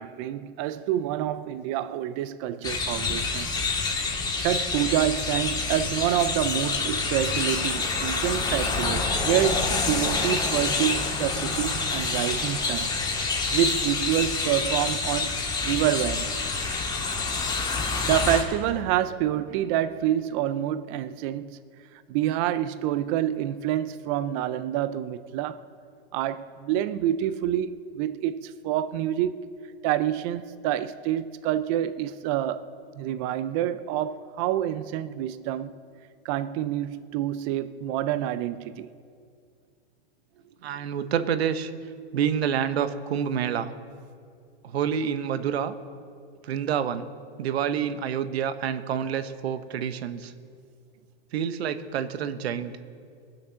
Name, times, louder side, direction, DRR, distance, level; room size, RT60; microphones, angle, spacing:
voice 1, 0.0-3.5 3.8-4.0 4.4-12.9 13.5-15.3 15.6-16.3 18.1-21.6 22.1-25.6 26.1-29.4 29.8-32.7 33.0-35.7 36.2-38.9, right 12 dB, 35° right, 0.4 m, -27 dB
sound 1, 2.6-18.4, left 4 dB, 15° left, 1.7 m, -27 dB
voice 2, 40.6-41.7 42.1-43.7 44.6-45.7 46.4-47.1 47.4-50.3 51.3-52.7, right 8 dB, 85° right, 1.0 m, -28 dB
20.5 x 7.5 x 6.3 m
supercardioid pair, 150°, 31 cm